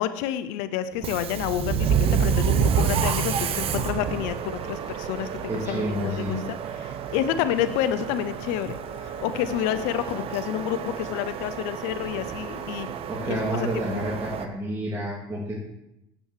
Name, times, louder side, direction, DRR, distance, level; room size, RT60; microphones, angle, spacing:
voice 1, 0.0-8.8 9.0-12.9 13.2-14.0, left 11 dB, 75° left, 12 dB, 0.6 m, -29 dB
Subway metro underground, 0.9-14.5, right 7 dB, 50° right, 0.8 m, -29 dB
voice 2, 5.5-6.5 13.1-15.6, right 1 dB, 20° right, -5 dB, 2.7 m, -29 dB
8.0 x 6.1 x 6.6 m, 0.87 s
supercardioid pair, 90°, 12 cm